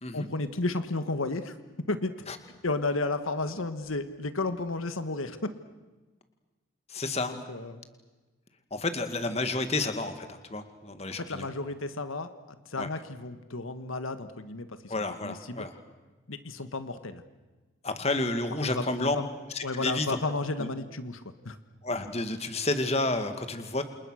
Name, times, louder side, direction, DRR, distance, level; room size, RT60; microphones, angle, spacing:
voice 1, 0.1-1.6 1.9-2.2 2.6-5.5 7.3-7.8 11.1-14.9 15.2-15.7 16.3-17.2 18.6-19.3 19.6-21.6, left 2 dB, 90° left, 10 dB, 1.6 m, -33 dB
voice 2, 6.9-7.4 8.7-11.5 12.8-12.9 14.9-15.7 17.8-19.2 19.5-20.2 20.6-20.7 21.8-23.8, left 2 dB, 30° left, 8 dB, 2.1 m, -30 dB
28.5 x 28.5 x 6.5 m, 1.2 s
head